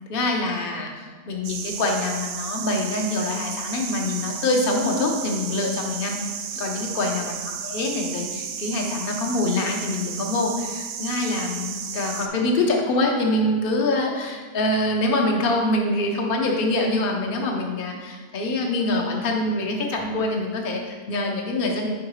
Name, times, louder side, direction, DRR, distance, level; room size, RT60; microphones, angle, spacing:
voice 1, 0.1-0.9 1.3-6.2 6.6-7.4 7.6-21.9, left 2 dB, 45° left, 1 dB, 0.8 m, -25 dB
sound 1, 1.4-12.3, right 7 dB, 70° right, 0.9 m, -33 dB
4.9 x 4.7 x 4.8 m, 1.5 s
omnidirectional pair, 1.8 m